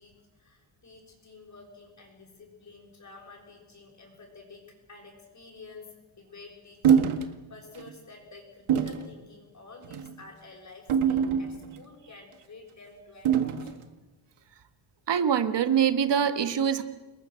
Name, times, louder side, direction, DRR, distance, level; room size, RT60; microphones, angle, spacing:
voice 1, 0.0-13.8, left 3 dB, 35° left, -4 dB, 6.6 m, -50 dB
sound 1, 6.8-7.3 7.7-7.9 8.7-9.1 9.8-10.1 10.9-11.8 13.2-13.8, right 8 dB, 75° right, 1.9 m, -24 dB
voice 2, 15.1-16.8, right 8 dB, 55° right, 9 dB, 1.7 m, -24 dB
29.5 x 21.0 x 6.6 m, 1.2 s
cardioid pair, 125°, 50 cm